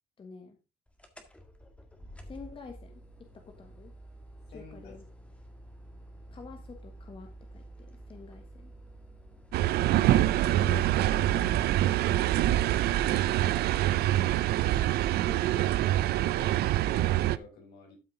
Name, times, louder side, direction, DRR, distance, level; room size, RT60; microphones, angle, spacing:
voice 1, 0.2-0.6 2.3-3.0 3.3-3.9 4.5-5.0 6.3-8.7 12.0-12.3 15.3-15.7, left 5 dB, 30° left, 5 dB, 1.5 m, -48 dB
sound 1, 1.0-13.8, equal, 5° left, 1.8 m, -47 dB
voice 2, 4.5-5.0 10.6-11.4 13.9-14.4 16.3-16.5 16.8-18.0, left 3 dB, 70° left, 1 dB, 5.3 m, -50 dB
sound 2, 9.5-17.4, right 14 dB, 70° right, 0.5 m, -25 dB
12.5 x 5.6 x 3.8 m, 0.29 s
cardioid pair, 110°, 17 cm